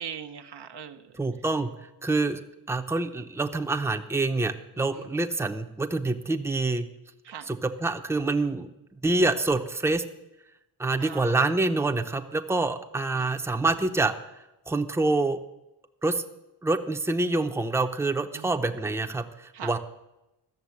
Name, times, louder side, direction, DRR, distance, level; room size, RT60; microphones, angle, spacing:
voice 1, 0.0-1.1 4.9-5.1 7.2-7.5 11.0-11.4 13.1-13.3 18.3-18.6 19.5-19.7, right 8 dB, 70° right, 7 dB, 0.9 m, -40 dB
voice 2, 1.1-1.7 2.0-2.4 2.7-6.9 7.5-8.7 9.0-10.0 10.8-14.1 14.7-15.4 16.0-16.2 16.6-19.8, right 2 dB, 5° right, 5 dB, 0.8 m, -26 dB
13.5 x 6.8 x 9.6 m, 0.93 s
wide cardioid pair, 100°, 43 cm